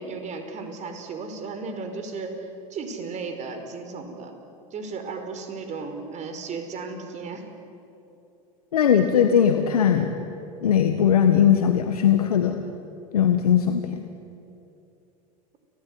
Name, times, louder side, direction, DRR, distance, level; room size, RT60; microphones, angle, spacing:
voice 1, 0.0-4.3 4.7-7.5, right 4 dB, 40° right, 6 dB, 4.9 m, -35 dB
voice 2, 8.7-10.1 10.6-12.6 13.1-14.0, left 8 dB, 90° left, 6 dB, 1.6 m, -19 dB
30.0 x 19.0 x 9.5 m, 2.8 s
hypercardioid pair, 90°, 19 cm